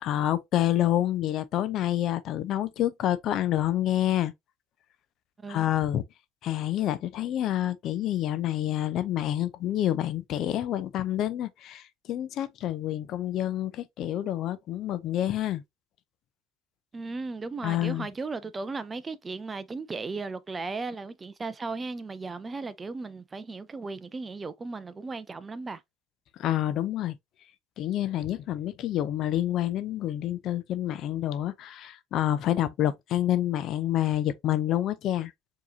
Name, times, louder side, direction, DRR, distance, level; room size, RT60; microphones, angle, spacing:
voice 1, 0.0-4.3 5.5-6.0 6.4-15.6 17.6-18.1 26.4-27.2 27.8-35.3, left 12 dB, 50° left, 0.5 m, -28 dB
voice 2, 16.9-25.8, right 3 dB, 20° right, 0.4 m, -36 dB
4.7 x 2.9 x 2.7 m
supercardioid pair, 100°, 0 cm